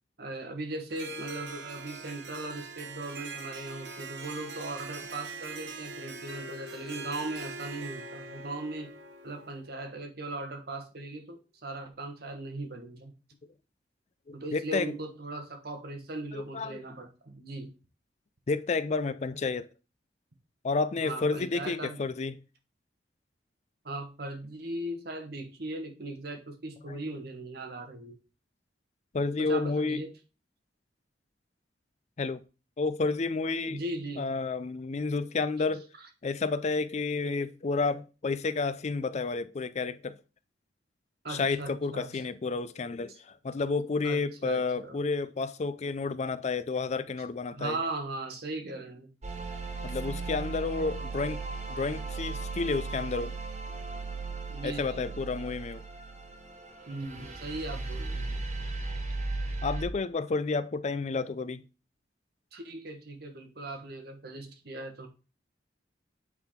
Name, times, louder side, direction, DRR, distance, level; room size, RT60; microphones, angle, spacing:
voice 1, 0.2-8.9 9.2-13.1 14.3-17.7 21.0-22.0 23.8-28.2 29.4-30.1 33.7-34.3 41.2-42.2 44.0-45.0 47.5-49.1 54.5-55.1 56.9-58.4 62.5-65.1, right 2 dB, 60° right, 1.4 m, -38 dB
Harp, 0.9-9.7, right 4 dB, 80° right, 1.1 m, -42 dB
Mallet percussion, 6.3-10.4, left 8 dB, 80° left, 0.9 m, -50 dB
voice 2, 14.3-15.0 16.3-16.8 18.5-19.7 20.6-22.3 26.9-27.0 29.1-30.0 32.2-32.4 32.8-33.8 34.2-35.9 36.2-40.2 41.3-47.8 49.8-51.4 51.7-53.3 54.6-55.8 59.6-61.6, left 4 dB, 40° left, 0.4 m, -30 dB
sound 1, 49.2-59.8, right 3 dB, 40° right, 1.2 m, -36 dB
8.0 x 3.8 x 4.3 m
head